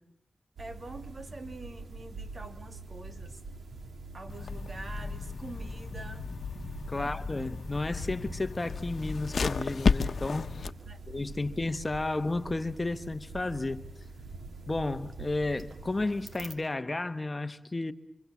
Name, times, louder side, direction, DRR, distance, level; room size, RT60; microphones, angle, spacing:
voice 1, 0.6-3.4 4.1-6.2 6.9-7.4 10.9-11.0, right 2 dB, 50° right, 2.6 m, -45 dB
sound 1, 0.6-16.5, right 3 dB, 90° right, 2.5 m, -45 dB
sound 2, 4.3-10.7, left 5 dB, 80° left, 1.1 m, -33 dB
voice 2, 6.9-10.5 11.1-13.8 14.7-17.9, left 2 dB, 35° left, 1.1 m, -32 dB
28.0 x 24.5 x 7.3 m
cardioid pair, 55°, 0 cm